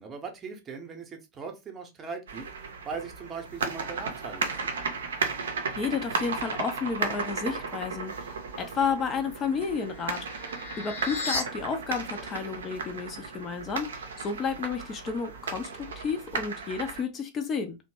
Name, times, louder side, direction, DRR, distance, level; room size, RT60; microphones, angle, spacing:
voice 1, 0.0-4.8, right 5 dB, 25° right, 0.7 m, -40 dB
sound 1, 2.3-17.0, right 4 dB, 65° right, 0.5 m, -35 dB
voice 2, 5.8-8.3 8.6-10.3 10.8-17.8, left 5 dB, 25° left, 0.4 m, -31 dB
sound 2, 9.2-11.4, left 3 dB, 60° left, 1.0 m, -36 dB
2.8 x 2.1 x 2.9 m
figure-of-eight pair, 90°, 0 cm